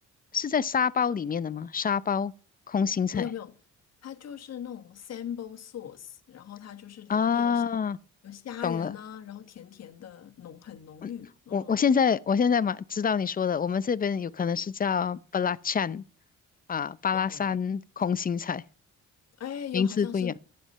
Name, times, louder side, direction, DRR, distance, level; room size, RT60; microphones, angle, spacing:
voice 1, 0.3-2.3 2.7-3.2 7.1-8.0 8.6-8.9 11.0-11.1 11.5-16.0 16.7-18.6 19.7-20.3, left 6 dB, 30° left, 0.6 m, -26 dB
voice 2, 3.1-3.5 4.0-7.6 8.2-11.7 17.1-17.6 19.4-20.4, left 9 dB, 55° left, 1.6 m, -40 dB
12.0 x 9.5 x 5.5 m
cardioid pair, 110°, 31 cm